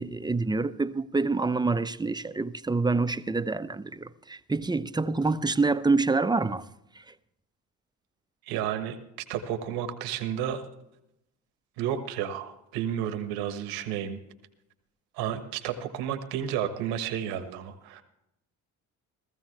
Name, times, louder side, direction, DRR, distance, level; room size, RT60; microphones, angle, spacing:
voice 1, 0.0-6.7 7.0-7.1, right 3 dB, 10° right, 0.7 m, -27 dB
voice 2, 8.5-9.0 9.3-10.6 11.8-14.2 15.2-18.0, right 9 dB, 80° right, 1.4 m, -31 dB
16.0 x 14.5 x 3.3 m
supercardioid pair, 65°, 36 cm